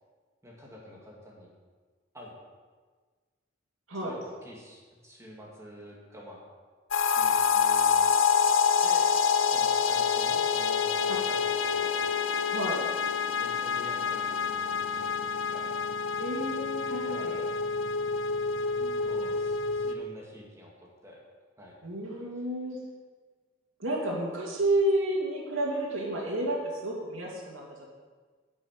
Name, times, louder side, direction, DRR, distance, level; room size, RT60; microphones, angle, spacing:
voice 1, 0.4-1.5 2.1-2.3 4.0-6.4 7.1-8.2 8.8-9.1 9.5-12.0 13.4-15.7 17.0-17.5 19.0-21.2 21.6-21.8, equal, 15° right, -3 dB, 2.1 m, -47 dB
sound 1, 6.9-19.9, left 6 dB, 70° left, 0.6 m, -27 dB
voice 2, 16.2-17.4 18.8-19.3 21.8-22.8 23.8-27.9, right 1 dB, 80° right, -4 dB, 2.4 m, -31 dB
11.0 x 6.1 x 9.0 m, 1.5 s
head